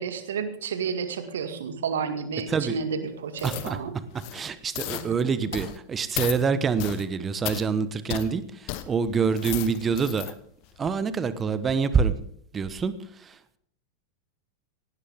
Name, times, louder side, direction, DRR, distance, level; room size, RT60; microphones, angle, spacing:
voice 1, 0.0-3.9 4.9-5.0, right 6 dB, 60° right, 9 dB, 2.1 m, -31 dB
sound 1, 3.4-3.7 4.1-4.4 4.7-5.1 5.5-5.8 6.1-6.4 6.8-7.0 7.4-7.6 8.1-8.3 8.7-8.8 9.2-10.3 10.8-10.9, left 16 dB, 45° left, 1.3 m, -34 dB
voice 2, 3.4-3.8 4.3-10.3 10.8-12.2 12.5-13.6, right 5 dB, 20° right, 14 dB, 1.2 m, -26 dB
18.0 x 17.0 x 3.7 m, 0.63 s
figure-of-eight pair, 90°, 0 cm